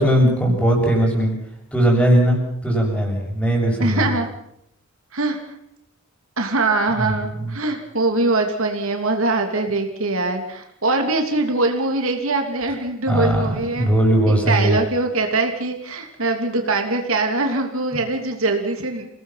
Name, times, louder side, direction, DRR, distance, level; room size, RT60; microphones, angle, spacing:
voice 1, 0.0-1.4 1.7-4.1 6.9-7.1 7.4-7.5 13.1-14.8, right 1 dB, 5° left, 0 dB, 7.0 m, -19 dB
voice 2, 3.8-4.3 5.1-5.4 6.4-13.9 14.3-19.1, right 2 dB, 70° right, 4 dB, 3.0 m, -22 dB
28.5 x 18.5 x 5.8 m, 0.75 s
head